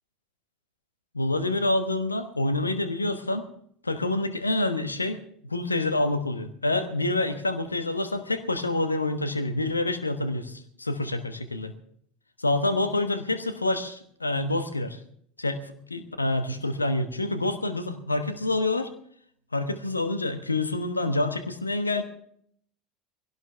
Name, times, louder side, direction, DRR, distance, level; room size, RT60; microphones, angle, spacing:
voice 1, 1.1-3.5 3.8-11.7 12.4-15.0 15.4-15.6 15.9-18.9 19.5-22.0, left 2 dB, 85° left, 10 dB, 1.2 m, -27 dB
21.0 x 17.0 x 3.4 m, 0.64 s
figure-of-eight pair, 70°, 0 cm